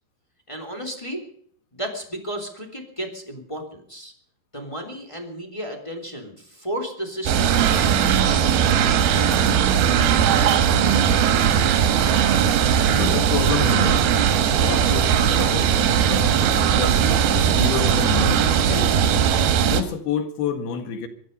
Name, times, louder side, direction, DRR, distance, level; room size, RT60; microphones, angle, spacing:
voice 1, 0.5-1.2 1.7-4.1 4.5-8.5, right 1 dB, 10° left, 2.8 m, -33 dB
sound 1, 7.3-19.8, right 8 dB, 80° right, 3.4 m, -19 dB
voice 2, 12.9-14.1 14.5-17.0 17.3-18.9 19.6-21.1, left 7 dB, 85° left, 3.8 m, -29 dB
25.5 x 10.0 x 5.4 m
omnidirectional pair, 4.4 m